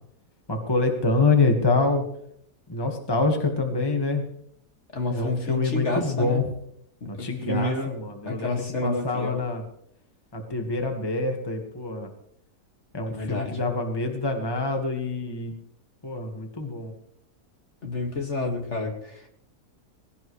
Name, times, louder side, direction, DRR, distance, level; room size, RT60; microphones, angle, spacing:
voice 1, 0.5-2.0 2.7-4.2 5.1-6.4 7.1-9.6 10.3-12.1 12.9-15.5 16.0-16.9, left 3 dB, 15° left, 3 dB, 1.5 m, -26 dB
voice 2, 4.9-6.4 7.0-7.9 8.2-9.4 13.1-13.6 17.8-19.3, left 2 dB, 45° left, 2 dB, 2.4 m, -30 dB
20.0 x 16.5 x 3.2 m, 0.71 s
omnidirectional pair, 1.7 m